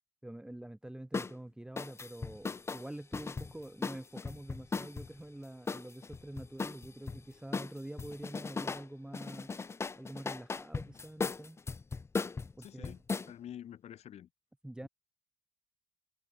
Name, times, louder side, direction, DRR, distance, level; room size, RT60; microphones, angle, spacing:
voice 1, 0.2-9.5 10.0-11.6 12.6-12.9 14.6-14.9, right 1 dB, 5° right, 2.3 m, -46 dB
sound 1, 1.1-1.3 1.8-5.1 5.7-7.2 7.5-8.9 9.1-13.3, left 4 dB, 20° left, 0.8 m, -37 dB
voice 2, 12.6-13.0 13.3-14.3 14.8-14.9, left 10 dB, 55° left, 5.4 m, -48 dB
cardioid pair, 110°, 13 cm